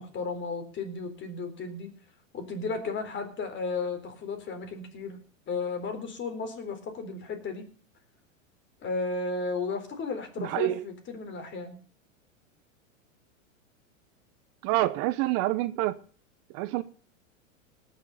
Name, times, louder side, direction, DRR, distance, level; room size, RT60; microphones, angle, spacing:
voice 1, 0.0-1.9 2.3-5.2 5.5-7.6 8.8-11.8, left 4 dB, 30° left, 4.0 m, -34 dB
voice 2, 10.4-10.9 14.6-16.0 16.5-16.8, right 16 dB, 45° right, 0.9 m, -27 dB
18.5 x 6.7 x 6.7 m
hypercardioid pair, 115°, 39 cm